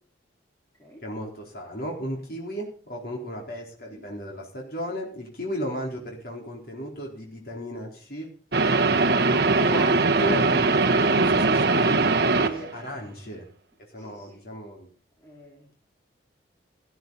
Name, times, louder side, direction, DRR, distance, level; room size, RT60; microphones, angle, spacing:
voice 1, 1.0-8.3 9.5-13.5 13.9-14.9, equal, 50° left, -2 dB, 4.2 m, -35 dB
sound 1, 8.5-12.8, right 3 dB, 60° right, 1.2 m, -21 dB
voice 2, 13.9-14.4 15.2-15.7, equal, 15° left, -4 dB, 4.4 m, -52 dB
15.0 x 14.0 x 4.1 m, 0.39 s
head